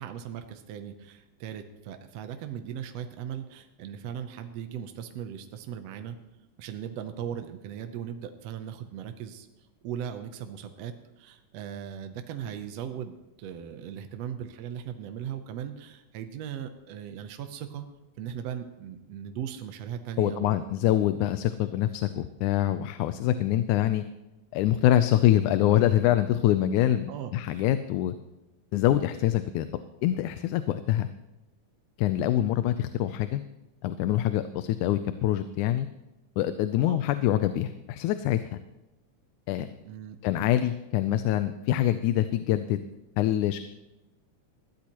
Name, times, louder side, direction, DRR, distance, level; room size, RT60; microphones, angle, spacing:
voice 1, 0.0-6.2 6.6-9.5 9.8-17.8 18.2-20.6 27.1-27.7 36.8-37.0 39.8-40.2, right 9 dB, 70° right, 7 dB, 1.8 m, -38 dB
voice 2, 20.2-24.0 24.5-28.1 28.7-29.7 30.0-31.1 32.0-33.4 33.8-35.9 36.4-38.5 39.5-39.7 40.2-42.8 43.2-43.6, left 12 dB, 90° left, 11 dB, 2.1 m, -25 dB
20.0 x 14.5 x 3.0 m, 1.0 s
omnidirectional pair, 3.4 m